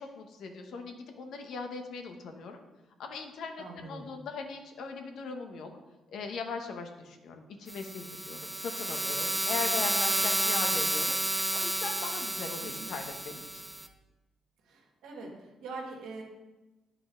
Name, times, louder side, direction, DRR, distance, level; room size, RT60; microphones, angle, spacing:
voice 1, 0.0-2.6 3.0-5.7 6.1-11.1 11.5-13.6, left 4 dB, 75° left, 5 dB, 1.0 m, -39 dB
voice 2, 3.6-4.1 12.6-12.9 14.6-16.2, right 3 dB, 85° right, -1 dB, 1.7 m, -43 dB
sound 1, 7.7-13.9, right 1 dB, 5° right, 0.6 m, -31 dB
9.7 x 4.8 x 3.8 m, 1.1 s
cardioid pair, 90°, 0 cm